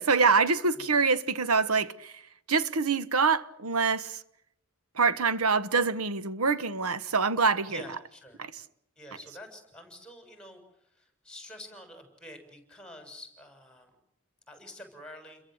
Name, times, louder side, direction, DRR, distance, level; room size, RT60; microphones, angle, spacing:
voice 1, 0.0-2.1 2.5-4.2 4.9-7.8 8.4-8.5, right 4 dB, 80° right, 1.3 m, -25 dB
voice 2, 7.7-8.4 9.0-13.9 14.5-15.4, left 1 dB, 5° left, 7.3 m, -48 dB
29.5 x 22.5 x 7.9 m
head